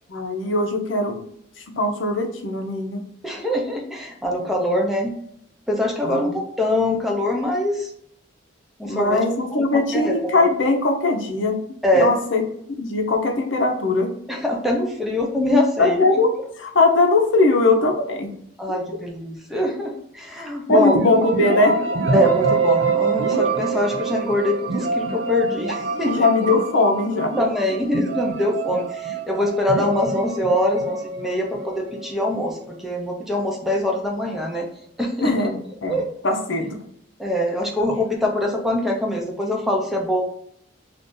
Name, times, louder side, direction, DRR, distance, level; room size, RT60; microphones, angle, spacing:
voice 1, 0.1-1.2 1.8-3.0 6.0-6.3 8.8-11.6 11.9-12.4 12.8-14.1 15.8-16.3 16.6-18.3 20.4-21.7 26.1-27.3 35.2-36.0 36.2-36.8, left 2 dB, 70° left, 4 dB, 0.7 m, -20 dB
voice 2, 3.2-5.1 5.7-7.9 8.8-9.2 9.5-10.1 11.8-12.1 14.3-16.0 18.6-21.0 22.1-26.3 27.4-34.7 35.0-35.3 35.9-36.1 37.2-40.2, left 1 dB, ahead, 0 dB, 0.6 m, -23 dB
sound 1, 20.7-32.4, right 4 dB, 60° right, 0.5 m, -25 dB
2.6 x 2.5 x 3.6 m, 0.70 s
head